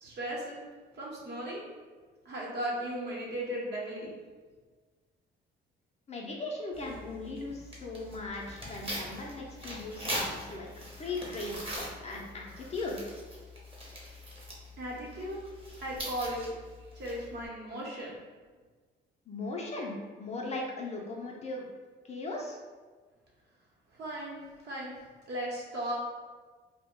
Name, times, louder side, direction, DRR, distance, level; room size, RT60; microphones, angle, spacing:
voice 1, 0.0-0.6 0.9-1.6 2.2-4.1 14.8-15.4 15.8-16.4 16.9-18.1 24.0-25.0 25.3-26.0, right 1 dB, 55° right, -4 dB, 0.9 m, -36 dB
voice 2, 6.1-10.7 11.0-13.0 19.3-21.6 22.1-22.6, left 2 dB, 35° left, -1 dB, 0.5 m, -38 dB
Tearing, 6.7-17.5, equal, 25° right, 0.8 m, -42 dB
2.2 x 2.1 x 3.6 m, 1.4 s
cardioid pair, 90°, 20 cm